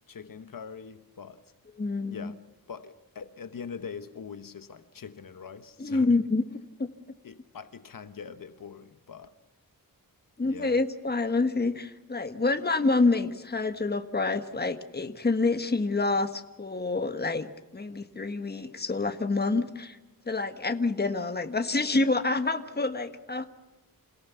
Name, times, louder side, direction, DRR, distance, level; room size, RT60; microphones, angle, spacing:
voice 1, 0.1-1.5 2.1-2.4 2.7-6.2 7.2-9.4 10.4-10.8, left 6 dB, 65° left, 1.2 m, -43 dB
voice 2, 1.8-2.3 5.8-6.4 6.8-6.9 10.4-20.0 20.3-23.5, left 3 dB, 25° left, 1.4 m, -27 dB
28.0 x 17.5 x 7.0 m
wide cardioid pair, 100°, 36 cm